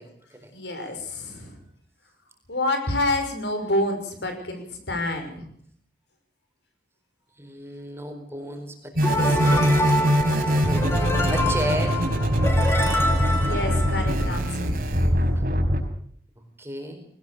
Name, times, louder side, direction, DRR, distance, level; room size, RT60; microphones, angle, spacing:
voice 1, 0.0-0.5 0.9-1.0 7.4-9.9 10.3-12.1 15.4-15.5 16.4-17.1, equal, 15° right, 5 dB, 4.4 m, -35 dB
voice 2, 0.5-1.6 2.5-5.5 10.1-10.2 13.4-14.8, left 1 dB, 80° left, 6 dB, 6.2 m, -28 dB
sound 1, 8.9-15.8, equal, 50° right, 4.8 m, -22 dB
sound 2, 9.0-14.5, equal, 15° left, 3.7 m, -27 dB
21.0 x 19.5 x 6.8 m, 0.62 s
head